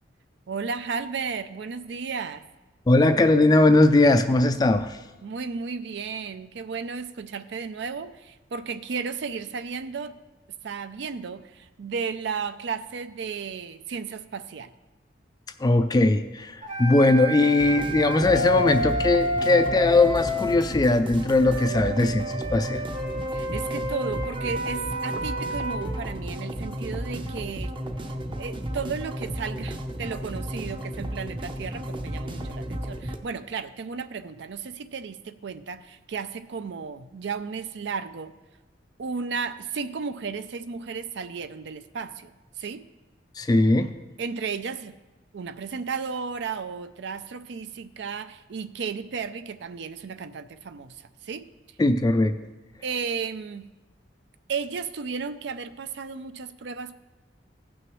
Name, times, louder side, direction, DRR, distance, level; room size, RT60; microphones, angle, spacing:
voice 1, 0.5-2.4 5.2-10.2 10.6-14.7 23.3-27.8 28.4-38.3 39.0-42.3 42.6-42.9 44.2-44.9 45.3-51.5 52.8-53.6 54.5-56.9, right 5 dB, 70° right, 13 dB, 0.5 m, -34 dB
voice 2, 2.9-5.0 15.6-22.8 43.4-43.9 51.8-52.4, left 2 dB, 20° left, 9 dB, 0.3 m, -20 dB
sound 1, 16.6-20.6 21.4-25.9, left 1 dB, 45° right, 2.6 m, -30 dB
sound 2, 17.6-33.2, equal, 30° right, 0.7 m, -34 dB
15.5 x 6.2 x 3.1 m, 1.1 s
head